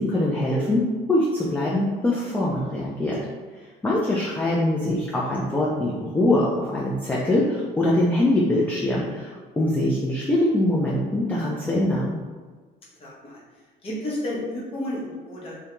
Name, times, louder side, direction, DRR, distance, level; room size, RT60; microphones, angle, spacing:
voice 1, 0.0-3.2 3.8-9.3 9.6-12.1, left 1 dB, 10° left, -5 dB, 0.4 m, -23 dB
voice 2, 13.0-13.4 13.8-15.6, left 1 dB, 35° left, -6 dB, 0.9 m, -32 dB
2.4 x 2.2 x 2.9 m, 1.4 s
cardioid pair, 110°, 17 cm